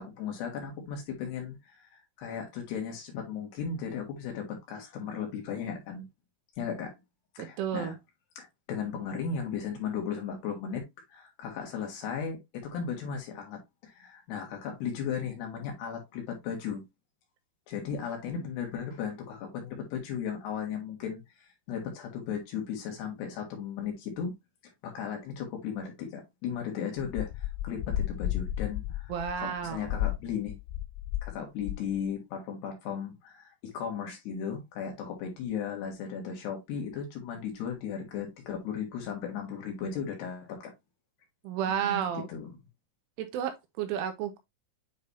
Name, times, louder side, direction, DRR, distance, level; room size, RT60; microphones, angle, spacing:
voice 1, 0.0-6.1 6.6-6.9 7.4-8.0 8.4-10.8 11.1-16.8 17.7-24.3 24.8-30.6 31.2-40.7 41.7-42.5, left 7 dB, 65° left, 3.5 m, -36 dB
voice 2, 7.4-7.9 29.1-29.9 41.4-42.3 43.2-44.4, right 9 dB, 80° right, 3.3 m, -32 dB
sound 1, 27.0-31.4 31.6-32.0, left 13 dB, 85° left, 3.3 m, -33 dB
9.5 x 4.0 x 2.7 m
omnidirectional pair, 5.8 m